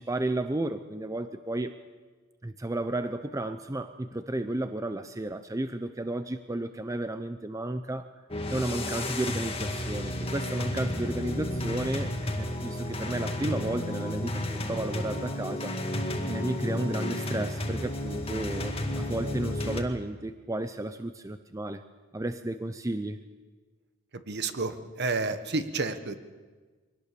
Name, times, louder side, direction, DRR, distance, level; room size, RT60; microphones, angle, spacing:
voice 1, 0.0-1.8 2.4-8.1 8.5-15.8 16.3-21.8 22.1-23.2, right 1 dB, 15° right, 9 dB, 0.6 m, -33 dB
sound 1, 8.3-19.8, left 1 dB, 30° left, 1.9 m, -32 dB
voice 2, 24.3-26.2, right 3 dB, 55° right, 9 dB, 1.3 m, -30 dB
23.5 x 18.5 x 6.9 m, 1.4 s
head